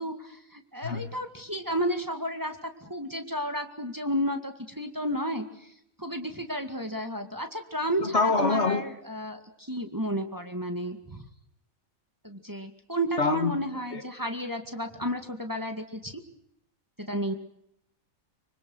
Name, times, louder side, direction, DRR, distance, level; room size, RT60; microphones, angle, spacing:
voice 1, 0.0-2.6 2.8-5.7 6.0-11.2 12.2-16.1 17.0-17.3, equal, 15° right, 2.1 m, -32 dB
voice 2, 8.0-8.8 13.2-13.5 13.9-14.0, left 4 dB, 55° left, 1.8 m, -25 dB
25.0 x 25.0 x 6.4 m
omnidirectional pair, 1.4 m